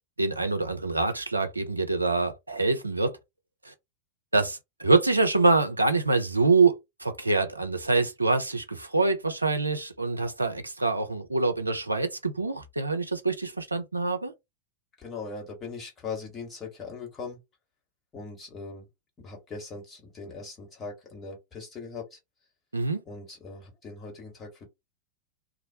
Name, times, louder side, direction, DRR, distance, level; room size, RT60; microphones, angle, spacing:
voice 1, 0.2-3.2 3.7-3.8 4.3-14.3 22.7-23.0, right 3 dB, 85° right, 0.5 m, -25 dB
voice 2, 15.0-17.4 18.1-18.9 19.2-22.2 23.0-24.7, left 4 dB, 20° left, 1.4 m, -40 dB
2.4 x 2.0 x 2.7 m
figure-of-eight pair, 90°, 0 cm